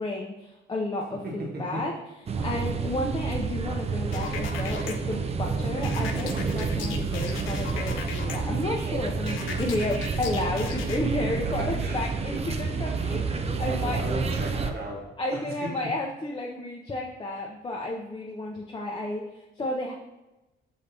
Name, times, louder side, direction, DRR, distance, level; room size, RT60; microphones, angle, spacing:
voice 1, 0.0-1.9 2.4-14.0 15.2-19.9, left 2 dB, 25° left, -1 dB, 0.6 m, -32 dB
voice 2, 1.2-1.8 11.2-12.0 13.6-15.7, right 1 dB, 50° right, -1 dB, 1.1 m, -35 dB
sound 1, 2.3-14.7, right 4 dB, 30° right, 0.4 m, -29 dB
sound 2, 4.1-4.9 5.8-8.4 9.3-11.0, left 6 dB, 85° left, 0.5 m, -37 dB
5.5 x 3.4 x 2.7 m, 1.0 s
cardioid pair, 90°, 20 cm